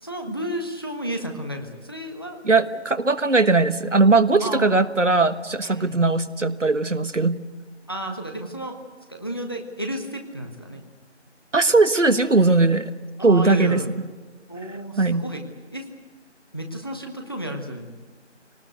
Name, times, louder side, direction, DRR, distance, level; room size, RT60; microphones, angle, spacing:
voice 1, 0.0-2.4 4.4-4.8 5.6-6.1 7.9-8.8 9.1-10.8 13.2-13.9 14.5-15.4 15.7-15.9 16.5-17.9, right 1 dB, 20° left, 4 dB, 1.3 m, -32 dB
voice 2, 2.4-7.4 11.5-12.9 13.2-13.8 15.0-15.3, right 3 dB, 85° right, 11 dB, 1.5 m, -19 dB
23.0 x 19.0 x 8.1 m, 1.4 s
figure-of-eight pair, 175°, 36 cm